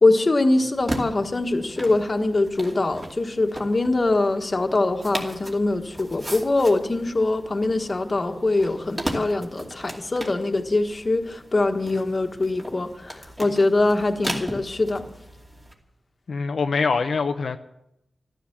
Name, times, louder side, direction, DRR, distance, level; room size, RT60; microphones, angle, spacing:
voice 1, 0.0-15.0, left 2 dB, 35° left, 1.4 m, -23 dB
sound 1, 0.7-15.7, right 1 dB, 25° right, 2.6 m, -37 dB
voice 2, 16.3-17.6, left 4 dB, 75° left, 0.7 m, -24 dB
14.5 x 13.0 x 7.2 m
wide cardioid pair, 135°, 0 cm